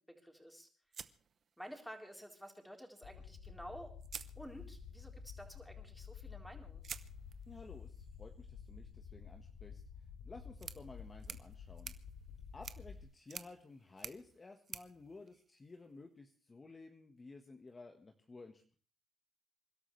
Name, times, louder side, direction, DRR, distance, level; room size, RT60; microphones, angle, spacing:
voice 1, 0.2-0.7 1.6-4.0 4.4-6.8, equal, ahead, 2 dB, 3.9 m, -51 dB
sound 1, 0.9-2.1 3.4-3.5 4.0-5.0 6.8-16.0, right 7 dB, 50° right, 0.9 m, -52 dB
sound 2, 3.0-13.0, left 6 dB, 90° left, 3.0 m, -51 dB
voice 2, 7.5-9.8 10.2-12.0 12.5-18.8, left 3 dB, 30° left, 5 dB, 1.4 m, -54 dB
27.5 x 12.5 x 3.3 m, 0.41 s
cardioid pair, 90°, 0 cm